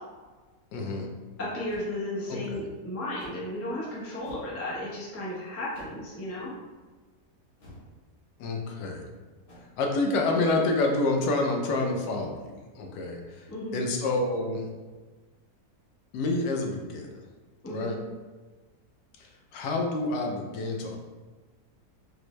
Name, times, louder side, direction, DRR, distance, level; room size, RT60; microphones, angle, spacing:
voice 1, 0.7-1.1 2.3-2.6 8.4-9.1 9.8-14.7 16.1-17.1 17.7-18.0 19.2-21.0, left 2 dB, 85° left, 1 dB, 1.2 m, -28 dB
voice 2, 1.4-6.5 13.5-13.8 17.6-17.9, left 1 dB, 20° left, -6 dB, 0.4 m, -34 dB
sound 1, 1.7-1.9 3.2-3.5 4.2-4.6 5.7-6.1 7.6-7.9 9.5-9.6, equal, 40° left, 0.9 m, -49 dB
4.3 x 2.1 x 3.0 m, 1.3 s
omnidirectional pair, 1.7 m